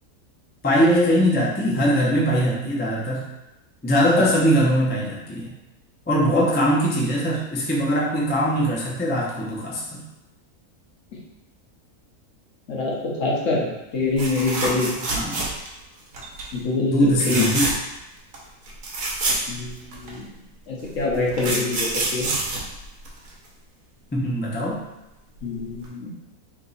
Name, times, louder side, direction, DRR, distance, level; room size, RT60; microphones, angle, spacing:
voice 1, 0.6-3.2 3.8-5.5 6.1-10.0 15.0-15.5 16.8-17.7 24.1-24.8, equal, 15° left, -5 dB, 0.4 m, -21 dB
voice 2, 12.7-13.7 13.9-14.9 16.5-17.5 19.5-20.3 20.7-22.3 25.4-26.1, left 3 dB, 65° left, -4 dB, 1.3 m, -25 dB
sound 1, 14.2-15.8 16.1-16.5 17.1-18.0 18.3-18.4 18.6-20.1 20.9-23.5 25.4-25.5 25.8-25.9, right 2 dB, 70° right, 1.3 m, -27 dB
3.5 x 3.0 x 4.0 m, 0.95 s
omnidirectional pair, 1.5 m